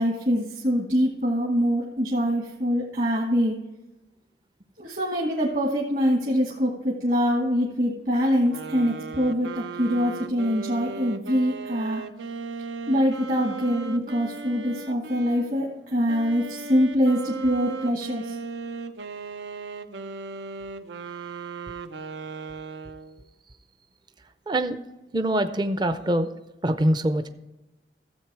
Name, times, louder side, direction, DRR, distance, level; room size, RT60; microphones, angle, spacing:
voice 1, 0.0-3.6 4.8-12.0 12.9-18.4, equal, 50° right, -1 dB, 1.4 m, -24 dB
sound 1, 8.5-15.5 16.1-23.2, right 4 dB, 85° right, 0.6 m, -37 dB
voice 2, 24.5-24.8 25.1-26.3 26.6-27.3, right 1 dB, 25° right, 10 dB, 0.5 m, -24 dB
13.5 x 7.7 x 4.6 m, 1.0 s
head